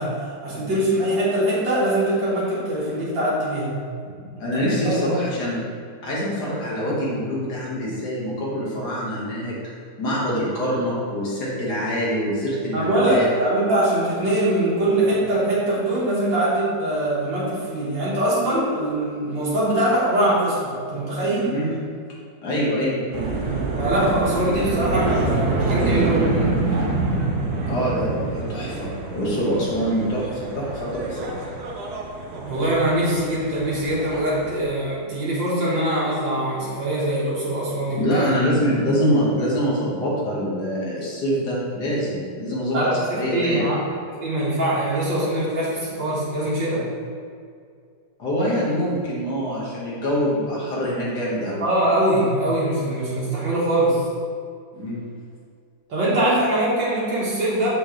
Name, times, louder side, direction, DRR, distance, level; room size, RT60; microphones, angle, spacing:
voice 1, 0.0-3.8 4.5-5.1 12.7-21.5 23.8-26.6 32.5-38.3 42.7-43.8 44.1-46.9 51.6-54.1 55.9-57.7, right 1 dB, 85° right, -8 dB, 2.2 m, -22 dB
voice 2, 4.4-5.6 6.0-9.5 10.0-13.3 21.4-21.7 22.4-23.0 27.7-31.2 37.9-42.8 43.1-43.7 48.2-51.6 54.7-55.0, equal, 65° left, -6 dB, 2.3 m, -24 dB
sound 1, 23.1-34.6, right 3 dB, 65° right, 1.3 m, -26 dB
6.4 x 6.3 x 3.2 m, 2.2 s
omnidirectional pair, 2.0 m